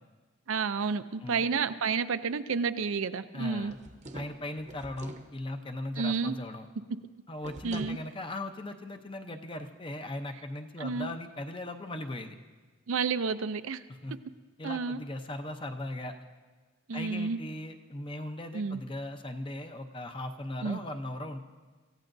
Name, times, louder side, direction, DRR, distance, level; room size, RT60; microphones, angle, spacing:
voice 1, 0.5-3.7 6.0-6.3 7.6-8.0 10.8-11.1 12.9-13.8 14.6-15.0 16.9-17.4 18.5-18.8 20.6-20.8, right 5 dB, 75° right, 11 dB, 0.5 m, -30 dB
voice 2, 3.3-3.8 4.1-6.7 7.3-12.4 13.9-14.1 14.6-16.2 16.9-21.4, left 1 dB, 25° left, 6 dB, 0.7 m, -38 dB
sound 1, 3.6-5.3 7.4-8.0, right 1 dB, 35° right, 0.8 m, -45 dB
26.0 x 15.5 x 2.7 m, 1.4 s
head